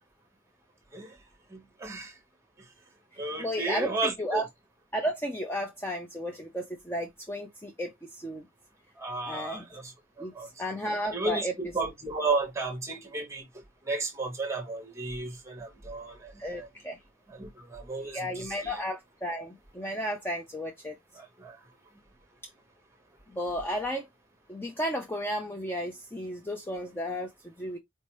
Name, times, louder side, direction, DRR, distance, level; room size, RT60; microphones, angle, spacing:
voice 1, 1.5-2.1 3.2-4.4 9.0-9.9 10.2-10.5 11.1-11.5 11.7-13.4 13.9-16.3 16.6-16.7 17.4-18.8 21.2-21.6, right 3 dB, 15° right, 1.2 m, -33 dB
voice 2, 3.4-4.5 4.9-8.5 9.3-9.6 10.2-11.6 16.4-17.0 18.0-21.0 23.3-24.1 24.5-27.8, equal, 10° left, 0.5 m, -33 dB
4.5 x 2.8 x 3.0 m
head